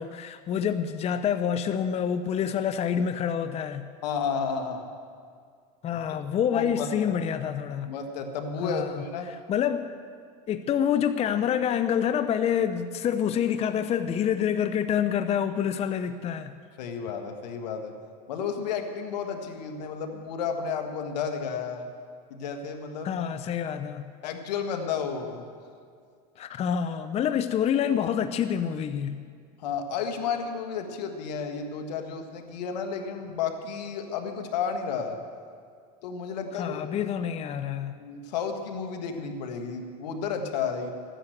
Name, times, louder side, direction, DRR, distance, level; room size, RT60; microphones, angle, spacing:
voice 1, 0.0-3.9 5.8-7.9 8.6-9.0 9.3-9.9 10.5-16.6 23.0-24.1 26.4-29.2 36.5-38.0, left 8 dB, 30° left, 10 dB, 0.6 m, -27 dB
voice 2, 4.0-4.9 6.5-7.1 7.8-9.3 16.8-17.9 18.3-21.9 22.3-23.2 24.2-25.4 29.6-35.2 36.0-36.8 37.9-40.9, left 6 dB, 85° left, 5 dB, 1.7 m, -32 dB
14.5 x 10.0 x 7.9 m, 2.1 s
supercardioid pair, 115°, 21 cm